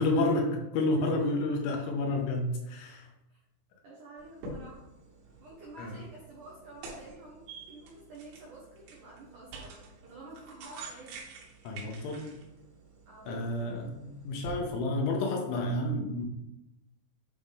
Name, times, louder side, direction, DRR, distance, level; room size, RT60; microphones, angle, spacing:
voice 1, 0.0-3.1 5.8-6.0 11.6-12.3 13.3-16.3, left 2 dB, 80° left, 1 dB, 3.3 m, -30 dB
voice 2, 3.8-4.8 5.4-11.1 13.1-13.8, right 2 dB, 85° right, -5 dB, 1.8 m, -50 dB
sound 1, 4.2-14.5, right 3 dB, 70° right, 3.2 m, -48 dB
8.4 x 3.8 x 3.6 m, 0.90 s
omnidirectional pair, 5.7 m